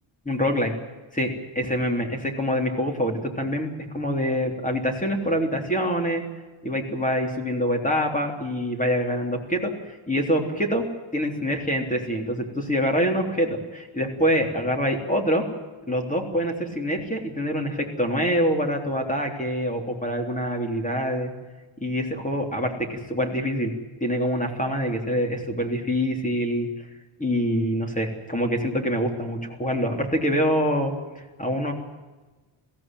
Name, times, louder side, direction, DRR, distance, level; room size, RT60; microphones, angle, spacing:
voice 1, 0.2-0.7 1.1-3.7 3.9-6.2 6.6-9.7 10.1-10.8 11.1-15.4 15.9-21.3 21.8-23.7 24.0-26.7 27.2-31.7, equal, 15° left, 3 dB, 3.5 m, -25 dB
22.0 x 16.5 x 9.2 m, 1.2 s
wide cardioid pair, 140°, 47 cm